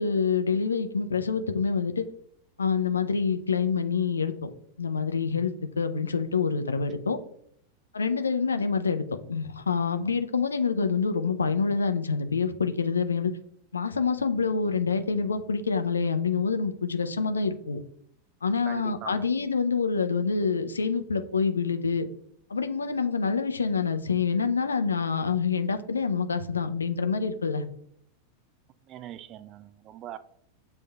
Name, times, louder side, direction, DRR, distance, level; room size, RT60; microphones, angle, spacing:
voice 1, 0.0-2.0 2.6-4.5 4.8-7.2 7.9-13.3 13.7-17.8 18.4-22.0 22.5-27.7, left 5 dB, 75° left, 9 dB, 0.3 m, -26 dB
voice 2, 18.7-19.2 28.9-30.2, right 11 dB, 35° right, 13 dB, 0.3 m, -41 dB
7.7 x 2.6 x 2.2 m, 0.71 s
figure-of-eight pair, 90°, 0 cm